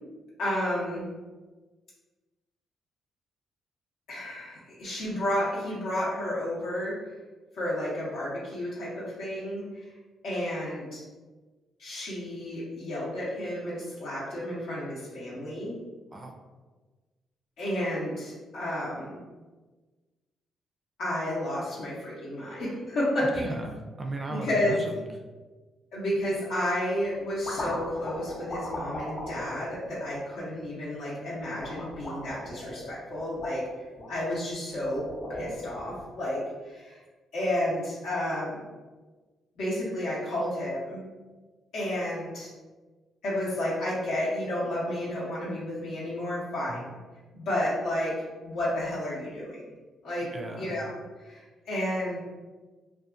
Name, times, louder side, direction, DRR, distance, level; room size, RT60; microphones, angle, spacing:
voice 1, 0.4-1.1 4.1-6.9 7.5-9.6 10.2-11.0 11.8-15.8 17.6-19.2 21.0-23.4 24.3-24.8 25.9-33.6 34.1-35.0 35.3-37.0 37.3-38.6 39.6-41.0 41.7-42.5 43.2-46.8 47.3-48.1 48.4-49.6 50.0-50.3 50.5-52.2, left 1 dB, 80° left, -9 dB, 0.8 m, -31 dB
voice 2, 23.4-25.0 46.7-46.8 50.3-50.7, right 2 dB, 30° right, 3 dB, 0.3 m, -36 dB
sound 1, 26.1-26.4 27.0-30.6 31.4-34.1 34.7-36.0, left 1 dB, 40° left, 0.7 m, -38 dB
2.6 x 2.3 x 2.4 m, 1.3 s
cardioid pair, 90°, 0 cm